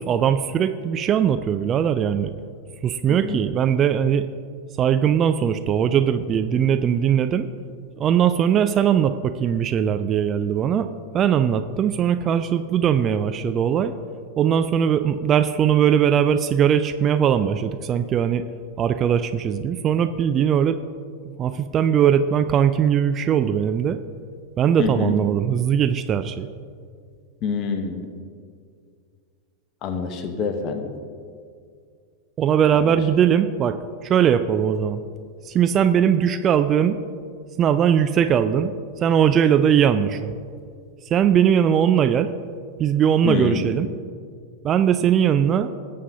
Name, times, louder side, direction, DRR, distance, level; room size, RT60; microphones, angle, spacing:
voice 1, 0.0-2.3 2.8-4.3 4.8-7.5 8.0-10.9 11.1-13.9 14.4-18.4 18.8-20.8 21.4-24.0 24.6-26.5 32.4-33.8 34.0-35.0 35.5-37.0 37.6-38.7 39.0-40.3 41.1-42.3 42.8-43.9 44.6-45.7, right 8 dB, 30° right, 10 dB, 0.3 m, -20 dB
voice 2, 3.1-3.4 24.8-25.2 27.4-28.1 29.8-30.9 32.7-33.0 43.2-43.6, left 5 dB, 35° left, 7 dB, 1.0 m, -26 dB
18.0 x 7.5 x 2.8 m, 2.2 s
figure-of-eight pair, 90°, 0 cm